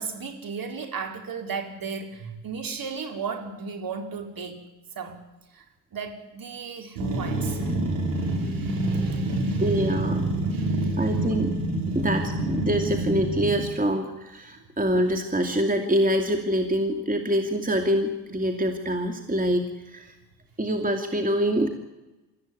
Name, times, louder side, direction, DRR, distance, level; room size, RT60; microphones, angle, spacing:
voice 1, 0.0-4.6 5.0-5.2 5.5-5.6 5.9-7.8 8.1-10.0 10.5-11.2, right 5 dB, 45° right, 4 dB, 4.5 m, -36 dB
sound 1, 7.0-13.7, right 1 dB, 85° right, 6.5 m, -27 dB
voice 2, 9.6-10.5 11.0-11.5 11.9-20.1 20.6-21.7, equal, 15° right, 5 dB, 2.7 m, -25 dB
25.0 x 13.5 x 9.8 m, 1.1 s
hypercardioid pair, 50°, 47 cm